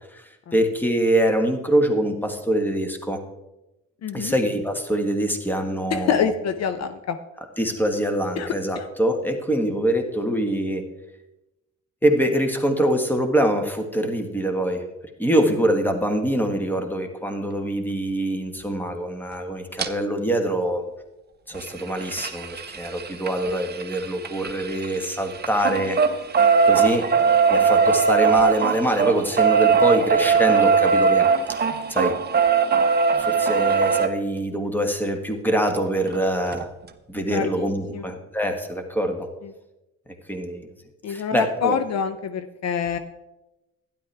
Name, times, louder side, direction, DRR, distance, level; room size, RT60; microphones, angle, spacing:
voice 1, 0.5-3.2 4.1-6.3 7.6-10.8 12.0-14.8 15.2-20.9 21.5-26.0 26.7-27.0 27.5-31.3 31.9-32.1 33.2-36.7 37.1-39.3 40.3-40.7 41.1-41.8, right 1 dB, 5° left, 5 dB, 1.5 m, -24 dB
voice 2, 4.0-4.3 5.9-7.2 8.4-8.9 23.5-23.6 37.3-37.7 37.9-38.0 39.4-39.5 41.0-43.0, left 7 dB, 60° left, 9 dB, 0.7 m, -26 dB
sound 1, 19.8-19.9 21.5-25.1 25.4-34.1 35.8-35.9 36.1-36.2 36.5-36.6, right 5 dB, 35° right, 0.8 m, -20 dB
12.0 x 10.5 x 3.4 m, 0.98 s
cardioid pair, 90°, 30 cm